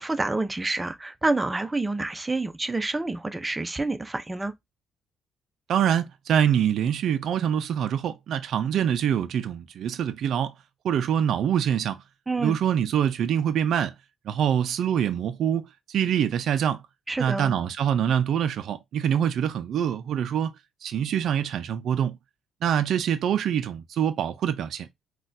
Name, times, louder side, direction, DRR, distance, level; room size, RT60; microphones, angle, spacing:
voice 1, 0.0-4.5 12.3-12.6 17.1-17.5, right 2 dB, 15° right, 0.5 m, -28 dB
voice 2, 5.7-10.5 10.8-12.0 12.4-13.9 14.3-16.8 17.2-20.5 20.8-22.2 22.6-24.9, right 9 dB, 70° right, 0.3 m, -25 dB
4.0 x 2.2 x 2.5 m
cardioid pair, 90°, 0 cm